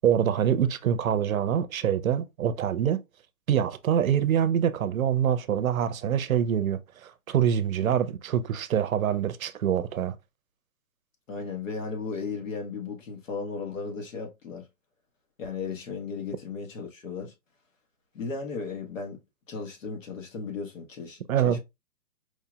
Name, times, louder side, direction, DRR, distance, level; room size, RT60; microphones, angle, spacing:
voice 1, 0.0-3.0 3.5-10.1 21.3-21.6, right 9 dB, 65° right, 0.7 m, -25 dB
voice 2, 11.3-14.6 15.4-17.3 18.1-19.2 19.5-21.6, left 4 dB, 55° left, 1.3 m, -35 dB
4.6 x 2.8 x 2.3 m
hypercardioid pair, 170°, 45 cm